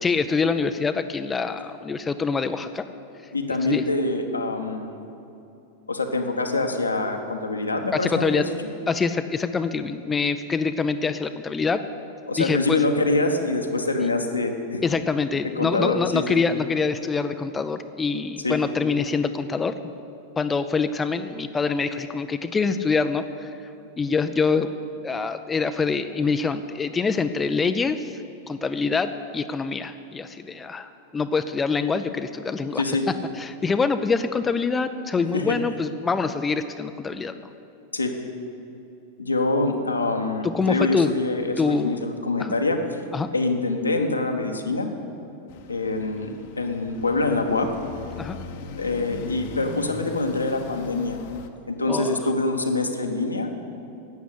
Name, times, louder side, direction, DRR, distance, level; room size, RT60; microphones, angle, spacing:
voice 1, 0.0-2.9 3.6-3.8 7.9-8.5 8.9-11.8 12.4-12.8 14.0-14.1 14.8-19.7 20.4-23.5 24.0-24.7 25.0-28.2 28.5-32.8 33.4-37.3 40.5-41.1 41.6-42.1 42.4-42.5 43.1-43.3 48.1-48.4 51.9-52.2, left 4 dB, 15° left, 9 dB, 0.5 m, -25 dB
voice 2, 3.3-4.9 5.9-8.5 12.3-14.8 15.6-16.4 18.4-18.6 32.7-33.0 35.3-35.5 37.9-38.1 39.2-42.8 43.3-44.9 45.7-47.7 48.8-51.2 51.7-53.5, left 2 dB, 85° left, 3 dB, 1.2 m, -25 dB
sound 1, 45.5-51.5, left 5 dB, 50° left, 0.9 m, -39 dB
12.0 x 8.2 x 8.2 m, 2.8 s
figure-of-eight pair, 90°, 0 cm